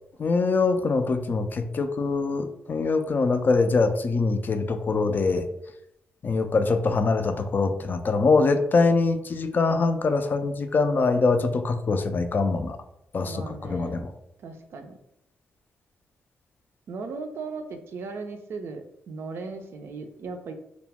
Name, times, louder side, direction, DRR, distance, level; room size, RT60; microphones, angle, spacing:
voice 1, 0.2-5.5 6.2-12.8 13.1-14.1, left 3 dB, 45° left, 7 dB, 0.3 m, -23 dB
voice 2, 13.2-14.0 14.4-15.0 16.9-20.5, right 4 dB, 60° right, 6 dB, 0.4 m, -37 dB
2.3 x 2.0 x 3.3 m, 0.78 s
hypercardioid pair, 45°, 5 cm